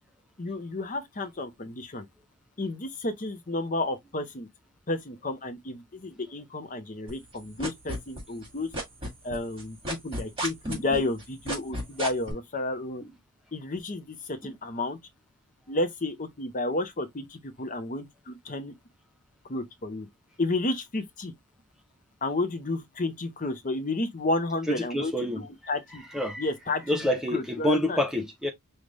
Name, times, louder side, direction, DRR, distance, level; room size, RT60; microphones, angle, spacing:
voice 1, 0.4-2.1 2.6-4.5 4.9-8.7 9.2-13.0 13.5-15.0 15.7-18.7 19.5-20.1 20.4-21.3 22.2-25.1 25.7-26.0 26.4-27.0 27.3-28.0, left 2 dB, 35° left, 0.7 m, -31 dB
sound 1, 7.1-8.5 8.7-12.3, right 1 dB, 25° right, 2.2 m, -32 dB
voice 2, 24.7-25.7 26.1-26.5 26.9-28.5, left 1 dB, ahead, 0.5 m, -28 dB
5.3 x 2.4 x 3.2 m
head